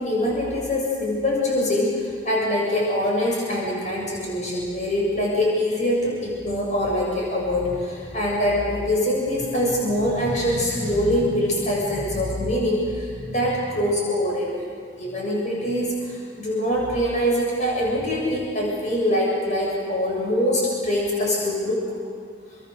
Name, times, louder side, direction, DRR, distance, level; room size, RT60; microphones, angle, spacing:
voice 1, 0.0-14.6 15.0-21.9, left 1 dB, 40° left, -3 dB, 7.5 m, -24 dB
30.0 x 24.5 x 6.9 m, 2.1 s
head